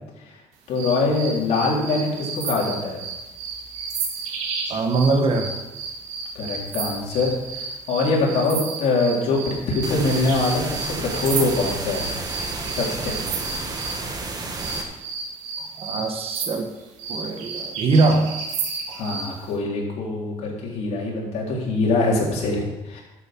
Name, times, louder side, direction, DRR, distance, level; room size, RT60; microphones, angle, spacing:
voice 1, 0.7-3.0 6.4-12.1 12.8-13.2 19.0-23.0, left 3 dB, 70° left, -2 dB, 3.8 m, -23 dB
sound 1, 0.7-14.0 14.6-19.3, right 5 dB, 85° right, 2.2 m, -32 dB
voice 2, 4.7-5.6 15.8-16.7 17.1-18.3 18.9-19.0, right 3 dB, 55° right, 5 dB, 1.4 m, -22 dB
sound 2, 9.8-14.8, right 3 dB, 35° right, 1.9 m, -31 dB
12.5 x 7.7 x 6.1 m, 1.0 s
cardioid pair, 120°, 12 cm